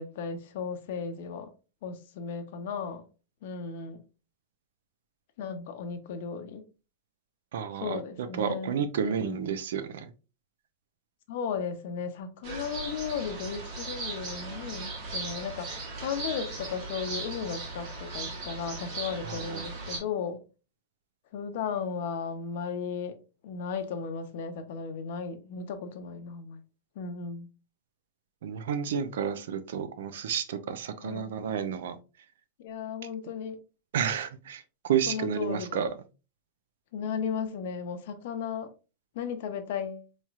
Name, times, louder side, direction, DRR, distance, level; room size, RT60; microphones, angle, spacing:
voice 1, 0.0-1.5 1.8-3.1 3.4-4.0 5.4-6.7 7.8-9.4 11.3-15.7 16.0-20.4 21.3-26.6 27.0-27.5 31.0-31.4 32.6-33.6 35.1-35.8 36.9-38.7 39.1-40.1, left 6 dB, 55° left, 0.6 m, -35 dB
voice 2, 7.5-8.0 8.4-10.1 19.2-19.7 28.4-32.0 33.9-35.9, right 8 dB, 75° right, 0.5 m, -31 dB
sound 1, 12.4-20.0, right 3 dB, 40° right, 1.2 m, -38 dB
4.2 x 3.1 x 2.4 m
supercardioid pair, 175°, 0 cm